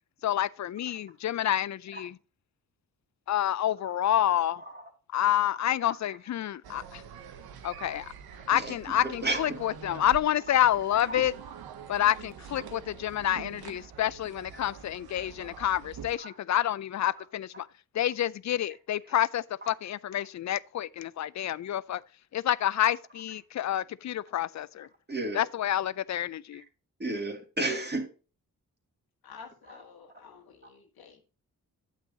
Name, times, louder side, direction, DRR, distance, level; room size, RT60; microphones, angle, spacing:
voice 1, 0.2-2.2 3.3-4.6 5.1-7.0 7.6-8.1 8.5-11.3 11.9-17.7 17.9-22.0 22.3-24.9 25.3-26.6, left 11 dB, 50° left, 0.4 m, -28 dB
sound 1, 6.6-16.1, right 7 dB, 85° right, 0.9 m, -46 dB
voice 2, 8.5-9.6 11.1-11.3 16.2-16.3 25.1-25.4 26.6-26.7 27.0-28.1 29.7-29.8, right 2 dB, 30° right, 2.5 m, -33 dB
voice 3, 29.2-31.2, left 6 dB, 85° left, 1.7 m, -50 dB
9.0 x 7.6 x 2.8 m
cardioid pair, 55°, 36 cm